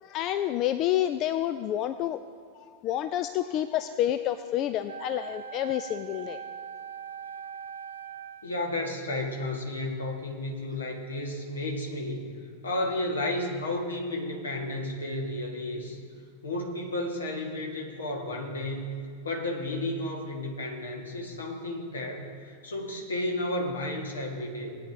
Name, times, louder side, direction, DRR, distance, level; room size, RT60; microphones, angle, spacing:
voice 1, 0.0-2.2 2.5-6.4, left 12 dB, 35° left, 12 dB, 0.3 m, -29 dB
Wind instrument woodwind instrument, 4.9-8.6, right 7 dB, 70° right, 0.4 m, -41 dB
voice 2, 8.4-12.3 12.6-16.0 16.4-24.8, left 1 dB, 70° left, 2 dB, 1.6 m, -32 dB
19.5 x 9.3 x 2.8 m, 2.4 s
figure-of-eight pair, 90°, 0 cm